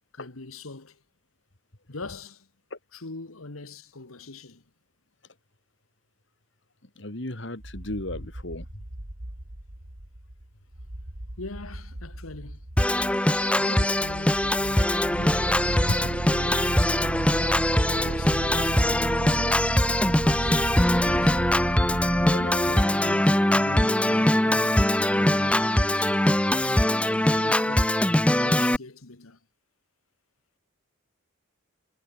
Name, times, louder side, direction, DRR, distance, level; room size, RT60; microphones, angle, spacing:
voice 1, 0.1-1.0 1.9-2.5 2.9-4.6 11.4-12.6 13.6-16.8 17.8-19.9 20.2-20.6 20.9-21.5 22.2-26.2 27.1-28.0 28.4-29.4, left 2 dB, 90° left, 1.8 m, -42 dB
voice 2, 7.0-8.8 15.9-16.0, left 1 dB, 60° left, 2.6 m, -33 dB
sound 1, 7.6-23.1, right 1 dB, 60° right, 3.0 m, -42 dB
Organ, 12.8-28.8, left 1 dB, 5° left, 0.6 m, -22 dB
sound 2, 15.2-22.4, right 4 dB, 40° right, 0.3 m, -32 dB
head